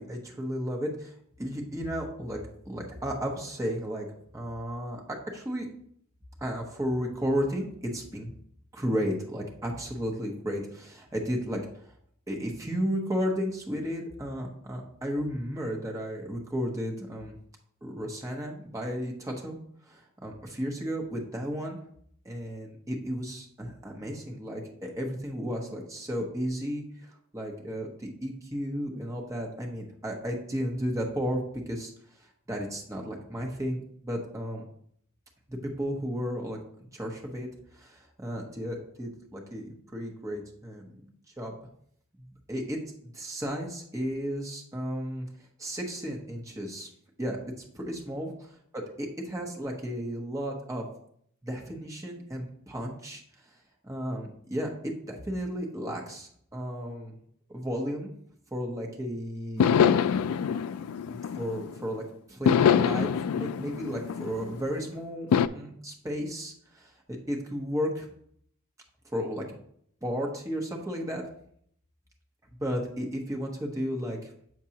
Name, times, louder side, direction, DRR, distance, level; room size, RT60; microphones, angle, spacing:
voice 1, 0.0-4.1 4.3-5.7 6.4-8.3 8.7-11.9 12.3-17.4 17.8-19.6 19.8-21.8 22.2-31.9 32.2-34.7 35.5-36.6 36.9-41.0 41.4-41.5 42.2-42.8 43.0-45.3 45.6-46.9 47.2-47.4 47.7-50.8 51.4-53.6 53.8-54.7 55.1-57.2 57.5-58.1 58.5-59.8 61.3-63.1 63.3-68.1 69.0-69.5 70.0-71.2 72.6-74.3, equal, 15° right, 0 dB, 0.9 m, -33 dB
sound 1, 59.6-61.9 62.5-64.7 65.3-65.5, left 8 dB, 85° left, 0.3 m, -24 dB
7.3 x 6.0 x 2.9 m, 0.66 s
head